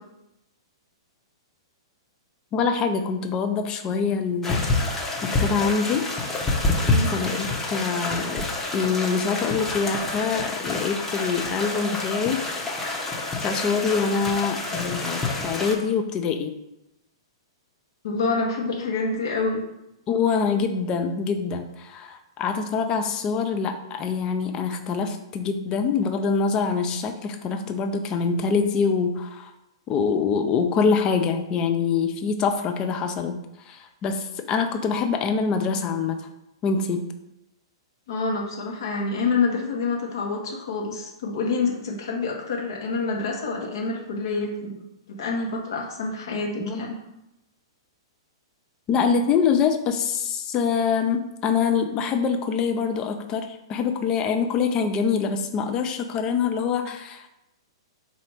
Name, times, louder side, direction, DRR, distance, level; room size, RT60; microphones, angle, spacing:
voice 1, 2.5-4.6 5.2-6.1 7.1-8.5 8.7-12.4 13.4-16.5 20.1-29.5 29.9-33.4 33.7-36.2 36.6-37.1 46.6-46.9 48.9-57.3, left 5 dB, 30° left, 6 dB, 0.5 m, -25 dB
sound 1, 4.4-15.7, left 2 dB, 10° left, 0.9 m, -27 dB
voice 2, 18.0-19.6 38.1-44.8 45.1-47.0, left 4 dB, 60° left, 0 dB, 1.2 m, -27 dB
4.0 x 2.8 x 4.8 m, 0.89 s
figure-of-eight pair, 110°, 3 cm